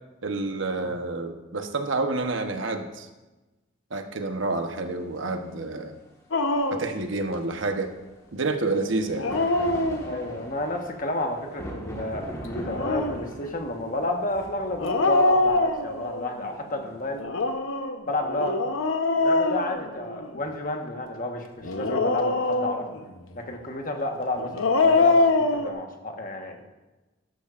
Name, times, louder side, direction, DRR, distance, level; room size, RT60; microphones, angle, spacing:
voice 1, 0.2-3.1 3.9-5.9 6.8-7.9 8.3-9.3, right 3 dB, 70° right, 6 dB, 1.0 m, -28 dB
sound 1, 4.9-5.0 8.7-17.1, equal, 15° left, 1.5 m, -41 dB
Dog, 6.3-6.9 9.0-10.4 12.5-13.3 14.8-16.3 17.2-20.4 21.6-23.0 24.4-25.7, left 2 dB, 90° left, 0.9 m, -24 dB
voice 2, 10.0-17.2 18.0-18.6 19.2-22.9 23.3-26.6, left 2 dB, 45° left, 3 dB, 1.3 m, -31 dB
13.0 x 11.5 x 2.5 m, 1.1 s
head